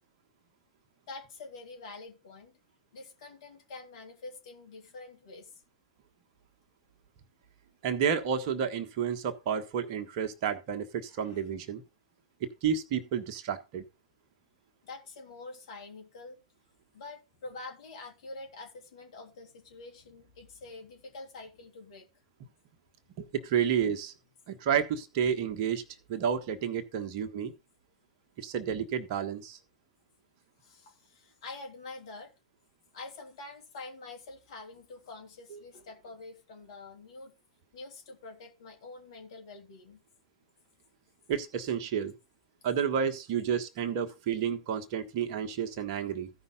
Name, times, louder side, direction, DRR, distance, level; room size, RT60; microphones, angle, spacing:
voice 1, 1.1-2.6 2.9-5.6 11.1-11.4 14.8-16.4 16.9-22.1 30.6-32.3 32.9-37.3 37.7-40.0, left 3 dB, 60° left, 3.2 m, -46 dB
voice 2, 7.8-11.8 12.4-13.8 23.2-24.1 24.5-25.8 26.1-27.5 28.4-29.6 35.5-35.6 41.3-42.1 42.6-46.3, right 8 dB, 45° right, 1.4 m, -30 dB
15.0 x 5.5 x 3.8 m
figure-of-eight pair, 100°, 3 cm